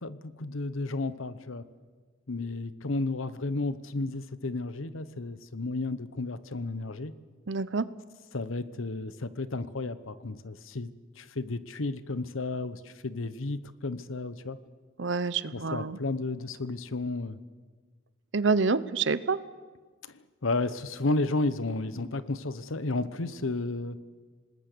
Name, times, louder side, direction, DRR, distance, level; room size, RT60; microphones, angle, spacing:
voice 1, 0.0-1.6 2.3-7.1 8.3-10.9 11.2-14.6 15.5-17.4 20.0-20.1 20.4-24.0, left 2 dB, 85° left, 14 dB, 1.0 m, -32 dB
voice 2, 7.5-7.9 15.0-16.0 18.3-19.4, right 4 dB, 65° right, 16 dB, 0.8 m, -27 dB
27.0 x 20.0 x 6.9 m, 1.5 s
head